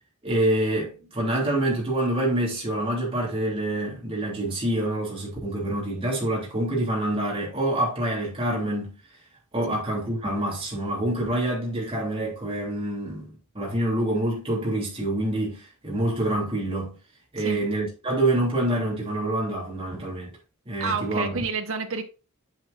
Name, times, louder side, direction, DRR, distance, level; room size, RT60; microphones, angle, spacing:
voice 1, 0.2-9.0 9.5-13.3 13.5-17.0 17.3-20.3 20.6-21.4, right 1 dB, 25° right, 3.1 m, -26 dB
voice 2, 20.8-22.0, right 4 dB, 65° right, 1.0 m, -29 dB
7.9 x 7.0 x 2.5 m
head